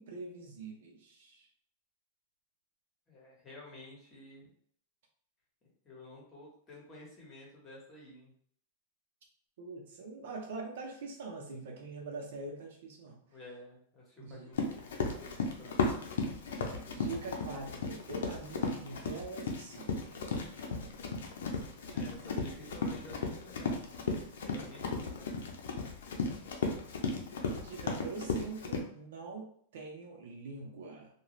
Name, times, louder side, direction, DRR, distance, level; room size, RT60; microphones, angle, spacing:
voice 1, 0.0-1.5 9.6-13.2 14.2-14.5 16.6-20.6 27.5-31.1, right 3 dB, 70° right, 0 dB, 0.8 m, -44 dB
voice 2, 3.1-4.5 5.6-8.3 13.3-16.1 21.9-25.4, left 2 dB, 20° left, -5 dB, 1.2 m, -52 dB
Run, 14.5-28.8, left 4 dB, 85° left, 0.5 m, -35 dB
2.4 x 2.3 x 3.1 m, 0.63 s
supercardioid pair, 140°, 0 cm